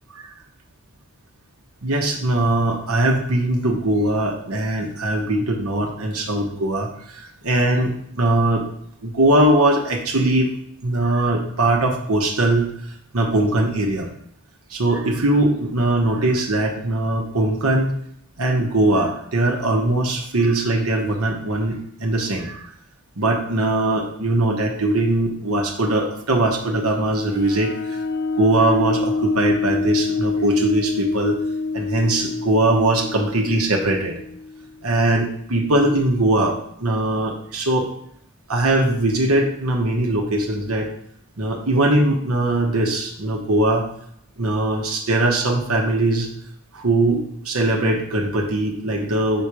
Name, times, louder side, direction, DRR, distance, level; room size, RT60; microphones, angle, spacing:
voice 1, 1.8-6.9 7.1-8.6 9.0-10.5 10.8-12.7 13.1-14.1 14.7-17.9 18.4-22.6 23.2-27.7 28.3-31.4 31.7-34.2 34.8-37.9 38.5-40.9 41.4-43.8 44.4-46.3 46.7-49.4, right 1 dB, 80° right, 1 dB, 1.2 m, -20 dB
sound 1, 27.4-34.8, left 3 dB, 50° left, 0.4 m, -26 dB
5.7 x 4.4 x 4.8 m, 0.71 s
head